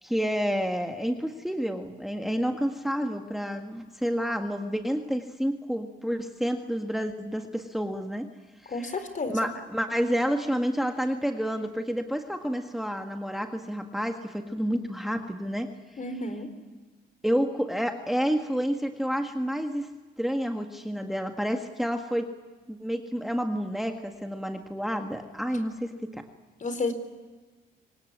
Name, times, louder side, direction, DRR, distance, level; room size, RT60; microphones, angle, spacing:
voice 1, 0.0-8.3 8.6-16.2 17.2-19.9 20.2-22.3 22.7-26.2, equal, ahead, 5 dB, 1.8 m, -29 dB
voice 2, 8.7-9.5 16.0-16.5 26.6-26.9, left 3 dB, 40° left, 10 dB, 4.0 m, -31 dB
24.5 x 19.0 x 9.5 m, 1.3 s
cardioid pair, 90°, 20 cm